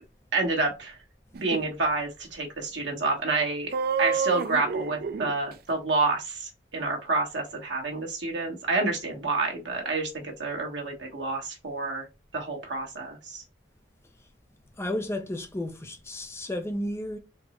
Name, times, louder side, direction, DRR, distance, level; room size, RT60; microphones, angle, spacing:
voice 1, 0.3-1.0 1.4-3.7 4.0-12.1 12.3-13.4, right 3 dB, 75° right, 1.2 m, -28 dB
sound 1, 1.3-1.6 3.7-5.3, right 5 dB, 55° right, 0.4 m, -28 dB
voice 2, 14.8-17.2, left 1 dB, 15° left, 0.4 m, -32 dB
4.3 x 2.0 x 4.2 m
head